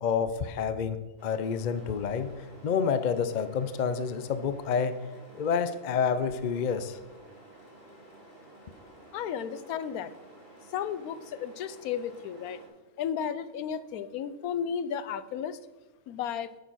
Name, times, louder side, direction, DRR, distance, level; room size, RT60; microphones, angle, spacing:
voice 1, 0.0-5.0 5.3-7.0, left 6 dB, 60° left, 11 dB, 0.4 m, -29 dB
sound 1, 1.2-12.7, right 1 dB, 40° left, 2.5 m, -52 dB
voice 2, 9.1-10.1 10.7-12.6 13.0-15.6 16.1-16.5, left 8 dB, 85° left, 15 dB, 1.1 m, -33 dB
9.3 x 6.6 x 6.1 m, 1.2 s
omnidirectional pair, 1.5 m